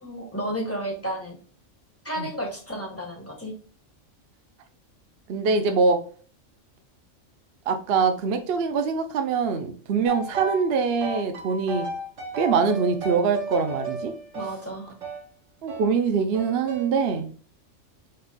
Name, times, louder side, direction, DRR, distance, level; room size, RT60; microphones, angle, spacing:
voice 1, 0.0-1.4 2.0-3.5 14.3-15.0, equal, 10° left, -1 dB, 1.4 m, -32 dB
voice 2, 5.3-6.0 7.7-11.9 12.4-14.1 15.6-17.3, right 5 dB, 60° right, 7 dB, 0.8 m, -23 dB
sound 1, 10.1-10.7 11.0-15.3 15.7-15.9 16.3-16.9, right 2 dB, 80° right, 1.4 m, -34 dB
5.3 x 4.1 x 2.2 m, 0.41 s
omnidirectional pair, 1.3 m